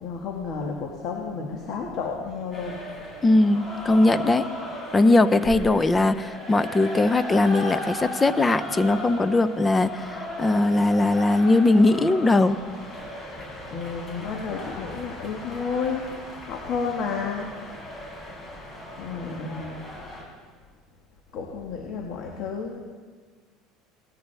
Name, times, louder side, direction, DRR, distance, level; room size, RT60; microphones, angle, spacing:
voice 1, 0.0-2.8 13.7-16.0 16.4-17.5 19.0-19.8 21.3-22.8, left 5 dB, 55° left, 1 dB, 1.7 m, -31 dB
sound 1, 2.5-20.2, left 1 dB, 35° left, 4.8 m, -37 dB
voice 2, 3.2-4.5 4.9-12.6, left 2 dB, 20° left, 14 dB, 0.6 m, -20 dB
19.5 x 13.5 x 3.5 m, 1.5 s
supercardioid pair, 110°, 0 cm